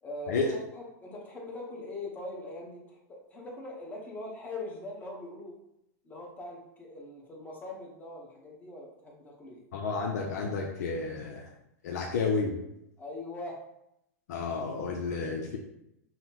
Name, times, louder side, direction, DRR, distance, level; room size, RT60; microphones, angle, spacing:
voice 1, 0.0-5.5 6.0-9.6 13.0-13.6, left 2 dB, 20° left, -2 dB, 1.0 m, -42 dB
voice 2, 9.7-11.5 11.8-12.6 14.3-15.6, left 4 dB, 75° left, 0 dB, 0.6 m, -31 dB
5.5 x 2.2 x 2.9 m, 0.84 s
hypercardioid pair, 135°, 9 cm